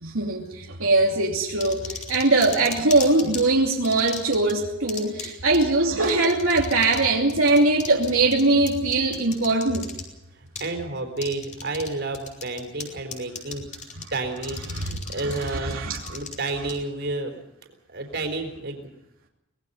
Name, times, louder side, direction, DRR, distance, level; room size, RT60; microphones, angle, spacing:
voice 1, 0.0-9.9 14.7-14.9 15.3-16.0, right 2 dB, 85° right, -1 dB, 2.8 m, -21 dB
sound 1, 1.6-3.4 3.8-4.5 4.9-5.3 5.5-5.6 6.0-7.0 7.3-10.0 10.6-10.7 11.2-11.9 12.1-12.8 13.1-14.0 14.4-16.7, left 6 dB, 40° left, 4.8 m, -35 dB
voice 2, 10.4-13.6 14.1-15.8 16.1-17.4 17.9-18.9, right 2 dB, 55° right, 4 dB, 4.1 m, -31 dB
24.5 x 20.0 x 5.7 m, 0.89 s
head